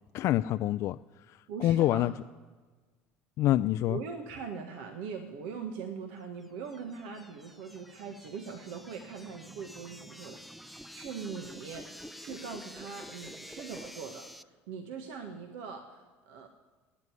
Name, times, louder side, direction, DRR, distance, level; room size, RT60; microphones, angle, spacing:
voice 1, 0.1-2.1 3.4-4.0, left 14 dB, 55° left, 11 dB, 0.4 m, -27 dB
voice 2, 1.5-2.1 3.9-16.5, right 5 dB, 75° right, 5 dB, 1.5 m, -41 dB
sound 1, 6.4-14.4, equal, ahead, 0.6 m, -48 dB
14.0 x 9.6 x 9.6 m, 1.4 s
hypercardioid pair, 75°, 6 cm